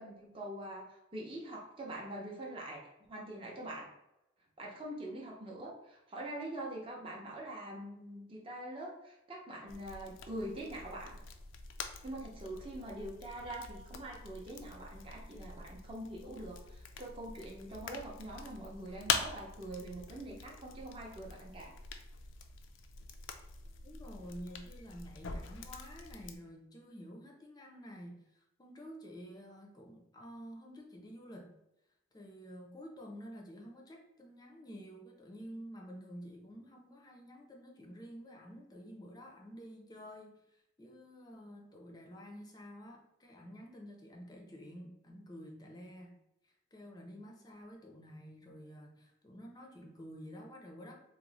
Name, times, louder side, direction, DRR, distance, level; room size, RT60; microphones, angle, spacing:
voice 1, 0.0-2.8 3.1-3.9 4.6-11.2 12.0-21.7, right 1 dB, 30° right, -2 dB, 0.5 m, -44 dB
sound 1, 9.7-26.4, left 5 dB, 75° left, 0.4 m, -44 dB
voice 2, 23.8-31.6 32.1-40.4 40.8-46.2 46.7-50.9, equal, 20° left, 1 dB, 0.5 m, -50 dB
3.0 x 2.0 x 3.8 m, 0.89 s
head